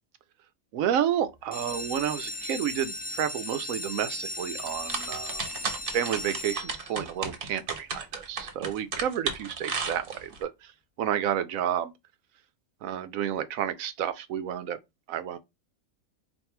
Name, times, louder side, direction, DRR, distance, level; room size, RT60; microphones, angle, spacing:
voice 1, 0.7-5.5 5.9-10.7 11.0-11.9 12.8-14.8 15.1-15.4, right 9 dB, 90° right, 1.0 m, -30 dB
sound 1, 1.4-7.1 7.7-8.2 8.6-8.7 9.0-9.1 9.5-9.6, left 2 dB, 10° left, 0.4 m, -37 dB
sound 2, 4.6-10.4, right 4 dB, 50° right, 0.9 m, -34 dB
3.5 x 2.5 x 4.4 m
omnidirectional pair, 1.4 m